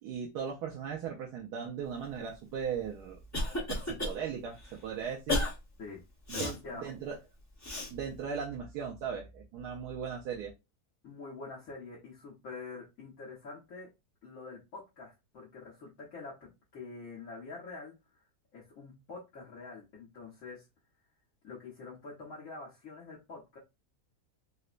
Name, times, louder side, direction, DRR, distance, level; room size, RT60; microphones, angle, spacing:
voice 1, 0.0-3.2 3.7-5.5 6.4-7.2 7.9-10.5, right 7 dB, 90° right, 0 dB, 1.2 m, -38 dB
Cough, 2.7-4.1 4.6-4.7 5.3-5.5 6.3-6.5 7.6-7.9, left 2 dB, 15° left, 0.8 m, -32 dB
voice 2, 6.3-6.9 11.0-13.9 14.2-17.9 18.5-20.6 21.4-23.6, left 3 dB, 60° left, -6 dB, 1.4 m, -46 dB
3.9 x 2.1 x 2.4 m, 0.24 s
omnidirectional pair, 1.7 m